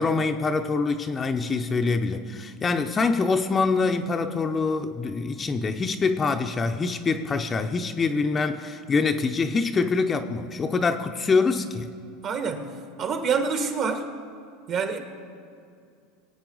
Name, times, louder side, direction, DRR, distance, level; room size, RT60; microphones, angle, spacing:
voice 1, 0.0-11.9, left 4 dB, 20° left, 6 dB, 0.6 m, -25 dB
voice 2, 12.2-12.7 13.0-14.1 14.7-15.0, right 5 dB, 45° right, 6 dB, 1.5 m, -26 dB
22.0 x 8.7 x 3.9 m, 2.3 s
supercardioid pair, 120°, 0 cm